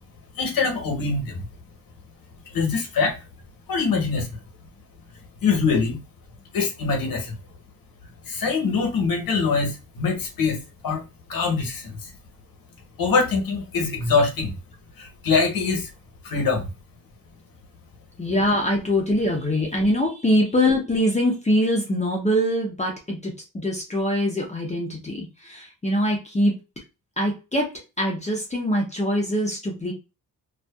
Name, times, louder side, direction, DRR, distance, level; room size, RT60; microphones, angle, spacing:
voice 1, 0.3-1.4 2.5-3.2 3.7-4.4 5.4-6.0 6.5-7.4 8.3-11.0 11.3-12.1 13.0-14.5 15.0-15.9 16.2-16.7, left 4 dB, 70° left, 3 dB, 1.0 m, -23 dB
voice 2, 18.2-26.5 27.2-27.7 28.0-29.9, equal, 20° left, -1 dB, 0.7 m, -23 dB
2.6 x 2.4 x 2.3 m, 0.28 s
cardioid pair, 90°, 36 cm